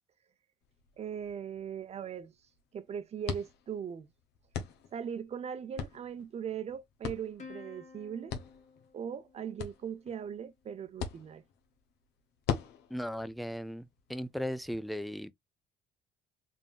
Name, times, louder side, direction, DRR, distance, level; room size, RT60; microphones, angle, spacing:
sound 1, 0.6-14.8, left 7 dB, 80° left, 1.1 m, -43 dB
voice 1, 1.0-2.3 2.7-4.1 4.9-8.3 8.9-11.4, right 8 dB, 40° right, 0.7 m, -39 dB
Plucked string instrument, 7.4-10.1, left 5 dB, 45° left, 1.8 m, -53 dB
voice 2, 12.9-15.3, equal, ahead, 0.4 m, -37 dB
3.9 x 3.6 x 2.3 m
cardioid pair, 110°, 17 cm